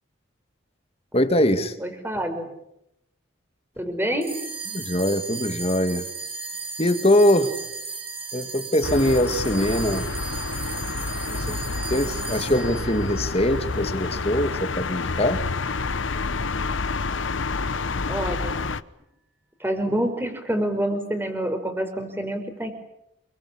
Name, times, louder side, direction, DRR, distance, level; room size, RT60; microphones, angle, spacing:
voice 1, 1.1-1.8 4.7-6.1 6.8-7.6 8.3-10.1 11.3-11.6 11.9-15.4, left 1 dB, 30° left, 9 dB, 2.2 m, -22 dB
voice 2, 1.8-2.5 3.8-4.4 18.1-18.6 19.6-22.7, right 1 dB, 10° right, 6 dB, 5.2 m, -27 dB
sound 1, 4.2-14.9, right 4 dB, 30° right, 7.4 m, -36 dB
sound 2, 8.8-18.8, left 4 dB, 70° left, 1.0 m, -29 dB
28.0 x 23.0 x 8.7 m, 0.83 s
head